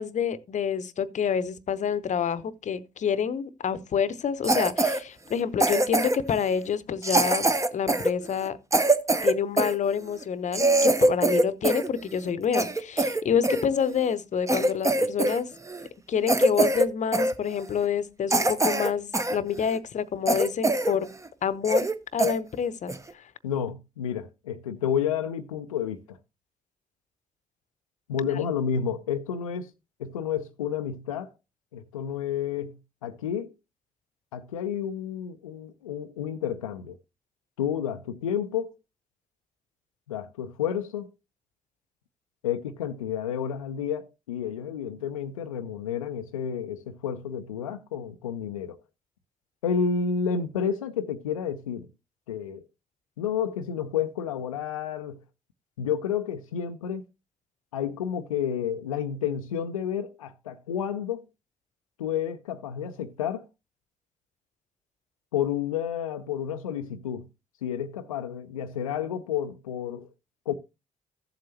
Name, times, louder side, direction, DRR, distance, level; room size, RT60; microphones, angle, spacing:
voice 1, 0.0-8.6 9.2-15.5 16.1-21.1 21.4-21.9 22.1-23.3 28.3-28.4, left 7 dB, 45° left, 0.8 m, -28 dB
Cough, 4.4-5.0 5.6-6.3 7.0-9.7 10.2-10.3 10.5-11.9 12.2-13.6 14.1-14.2 14.5-15.4 15.7-15.9 16.3-16.9 17.1-17.3 17.8-17.9 18.3-19.4 19.7-19.8 20.3-20.9 21.2-21.3 21.6-21.9 22.2-22.3 22.9-23.1, right 2 dB, 20° right, 1.0 m, -23 dB
voice 2, 23.4-26.2 28.1-29.7 30.0-31.3 31.7-32.8 33.0-33.5 34.3-37.0 37.6-38.8 40.1-41.1 42.4-48.8 49.6-51.9 52.3-52.7 53.2-55.2 55.8-57.0 57.7-61.2 62.0-63.5 65.3-67.3 67.6-70.1 70.5-70.6, left 8 dB, 85° left, 0.5 m, -30 dB
14.5 x 7.6 x 2.8 m
figure-of-eight pair, 40°, 17 cm